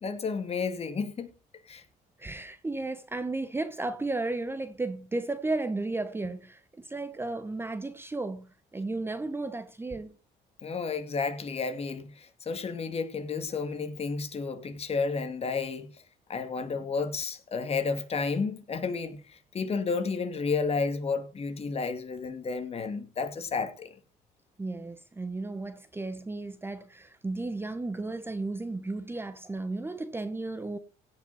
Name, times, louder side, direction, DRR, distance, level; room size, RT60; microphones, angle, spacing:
voice 1, 0.0-1.3 1.7-1.8 10.6-15.9 16.3-23.9, left 4 dB, 35° left, 2.3 m, -31 dB
voice 2, 2.2-8.5 8.7-10.2 24.6-30.8, right 2 dB, 15° right, 0.9 m, -34 dB
16.5 x 5.9 x 5.5 m
cardioid pair, 110°, 17 cm